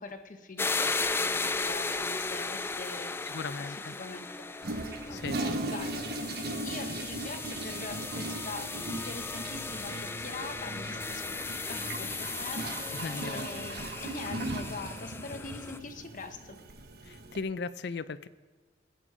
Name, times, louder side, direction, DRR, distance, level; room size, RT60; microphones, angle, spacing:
voice 1, 0.0-3.1 3.7-6.1 6.5-11.4 11.7-16.6, left 3 dB, 50° left, 7 dB, 1.1 m, -43 dB
sound 1, 0.6-15.8, left 3 dB, 15° left, 0.3 m, -36 dB
voice 2, 3.3-3.9 5.1-5.4 12.9-13.5 17.0-18.3, left 4 dB, 65° left, 15 dB, 0.5 m, -37 dB
Toilet flush, 4.6-17.4, right 2 dB, 60° right, 1.0 m, -38 dB
20.5 x 8.9 x 4.9 m, 1.4 s
head